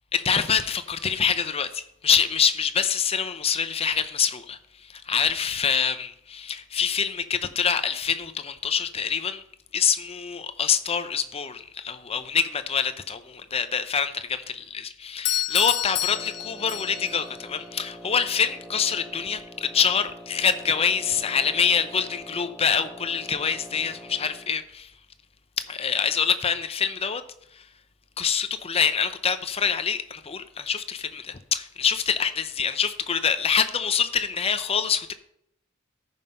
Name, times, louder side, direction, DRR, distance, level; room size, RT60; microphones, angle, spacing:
voice 1, 0.1-9.4 9.7-24.9 25.6-27.2 27.5-27.6 28.2-35.1, left 7 dB, 30° left, 0.7 m, -25 dB
Doorbell, 15.3-17.3, left 12 dB, 60° left, 0.9 m, -28 dB
Wind instrument woodwind instrument, 16.0-24.6, equal, 5° right, 0.8 m, -44 dB
14.0 x 5.6 x 5.4 m
head